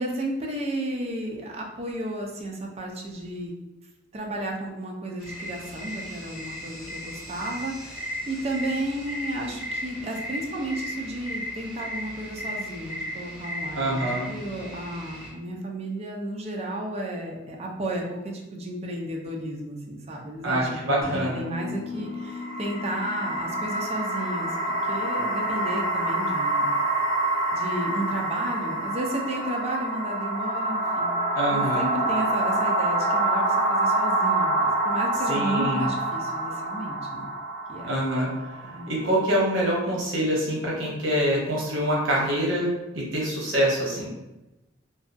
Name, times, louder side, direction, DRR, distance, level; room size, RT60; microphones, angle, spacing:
voice 1, 0.0-3.5 4.1-21.1 21.3-24.6 24.8-26.7 27.5-31.1 31.5-37.3 37.7-37.9 38.7-38.9, right 1 dB, 35° right, 0 dB, 0.4 m, -33 dB
sound 1, 5.2-15.3, left 1 dB, 5° right, 1.1 m, -36 dB
voice 2, 13.8-14.3 20.4-21.4 31.4-31.9 35.3-35.9 37.8-38.3 38.9-44.1, equal, 85° right, -3 dB, 0.7 m, -25 dB
sound 2, 21.0-24.8, left 2 dB, 50° right, 0.8 m, -37 dB
sound 3, 22.1-39.3, right 2 dB, 65° left, 0.6 m, -26 dB
2.6 x 2.2 x 2.4 m, 0.99 s
head